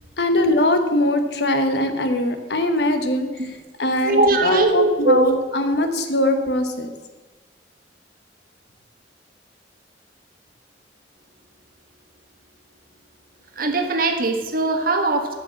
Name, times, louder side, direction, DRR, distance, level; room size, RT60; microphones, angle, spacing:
voice 1, 0.2-3.3 3.8-6.9, left 1 dB, 65° left, 7 dB, 1.1 m, -21 dB
voice 2, 4.0-5.3 13.5-15.3, right 2 dB, 55° right, 5 dB, 1.3 m, -20 dB
7.5 x 6.9 x 8.2 m, 1.3 s
head